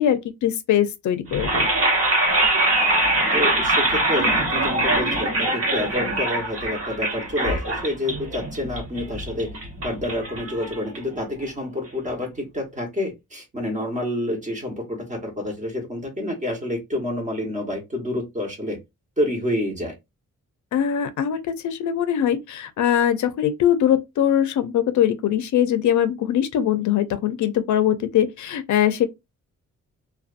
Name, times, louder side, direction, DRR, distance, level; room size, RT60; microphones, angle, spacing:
voice 1, 0.0-1.7 20.7-29.1, left 10 dB, 75° left, 0.5 m, -22 dB
sound 1, 1.3-11.3, right 2 dB, 50° right, 1.1 m, -23 dB
voice 2, 3.3-9.5 9.8-18.8 19.2-19.9, left 1 dB, 25° right, 1.0 m, -28 dB
2.5 x 2.2 x 2.4 m
wide cardioid pair, 125°, 30 cm